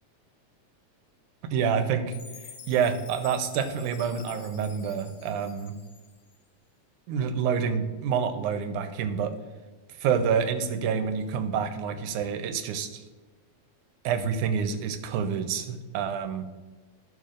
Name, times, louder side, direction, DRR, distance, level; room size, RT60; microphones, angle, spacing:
voice 1, 1.4-5.8 7.1-9.3 10.0-13.0 14.0-16.5, right 7 dB, 85° right, 8 dB, 2.1 m, -28 dB
Chime, 2.1-6.4, left 6 dB, 65° left, 2.0 m, -48 dB
13.5 x 4.6 x 2.5 m, 1.3 s
omnidirectional pair, 3.4 m